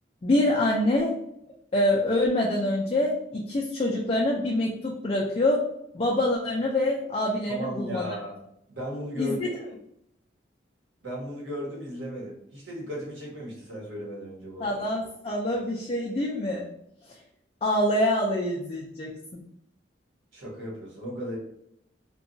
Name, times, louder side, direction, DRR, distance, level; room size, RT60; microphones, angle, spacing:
voice 1, 0.2-1.1 1.7-5.6 5.9-8.1 9.2-9.5 14.6-16.7 17.1-17.2 17.6-19.4, left 1 dB, 30° left, -3 dB, 0.3 m, -25 dB
voice 2, 7.5-8.4 8.7-9.4 11.0-14.8 20.3-21.4, equal, 85° right, -3 dB, 1.0 m, -36 dB
2.8 x 2.2 x 2.6 m, 0.75 s
head